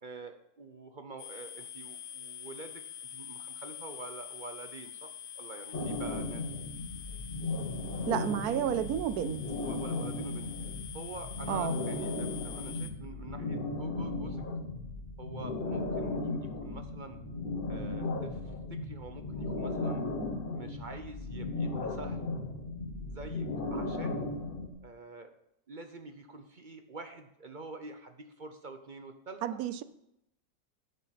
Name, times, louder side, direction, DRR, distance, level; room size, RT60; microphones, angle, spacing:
voice 1, 0.0-6.4 9.6-10.5 10.9-14.4 15.2-17.2 17.7-20.0 20.5-22.3 23.1-24.2 24.8-25.3 25.7-29.6, right 3 dB, 45° right, 0.7 m, -47 dB
sound 1, 1.2-12.9, left 10 dB, 75° left, 1.2 m, -46 dB
sound 2, 5.7-24.7, left 2 dB, 40° left, 1.2 m, -36 dB
voice 2, 8.1-9.4 11.5-11.7 29.4-29.8, right 10 dB, 85° right, 1.1 m, -31 dB
10.5 x 6.8 x 5.8 m
omnidirectional pair, 1.6 m